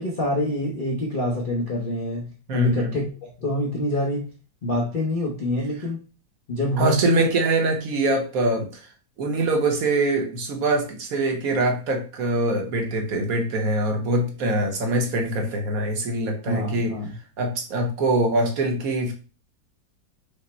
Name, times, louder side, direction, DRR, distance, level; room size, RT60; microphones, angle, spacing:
voice 1, 0.0-4.3 4.6-6.0 6.5-7.3 16.5-17.1, left 1 dB, 50° left, -3 dB, 0.6 m, -26 dB
voice 2, 2.5-2.9 6.8-8.7 9.2-16.9 17.4-19.1, right 2 dB, 55° right, 2 dB, 1.1 m, -23 dB
5.1 x 2.1 x 4.1 m, 0.35 s
omnidirectional pair, 2.1 m